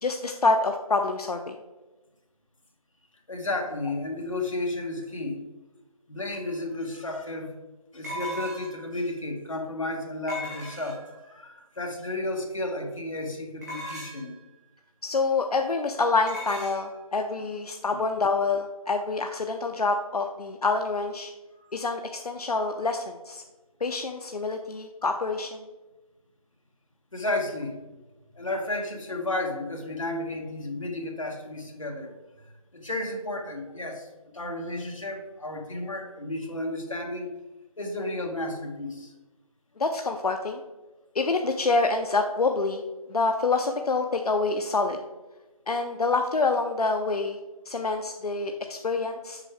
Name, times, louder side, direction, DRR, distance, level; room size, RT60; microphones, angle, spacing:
voice 1, 0.0-1.6 15.0-21.3 21.7-23.4 23.8-25.6 39.8-40.6 41.1-42.8 43.1-45.0 45.7-47.4 47.7-49.4, left 3 dB, 85° left, 5 dB, 0.6 m, -26 dB
voice 2, 3.3-5.4 6.1-7.5 7.9-14.3 21.6-21.7 27.1-27.8 28.3-32.1 32.7-34.1 34.3-37.4 37.8-39.1, left 2 dB, 60° left, 2 dB, 1.3 m, -32 dB
sound 1, 6.5-6.6 8.0-8.9 10.3-11.2 13.6-14.3 16.3-16.8, equal, 25° right, 2.1 m, -37 dB
7.3 x 4.7 x 3.3 m, 1.1 s
figure-of-eight pair, 180°, 19 cm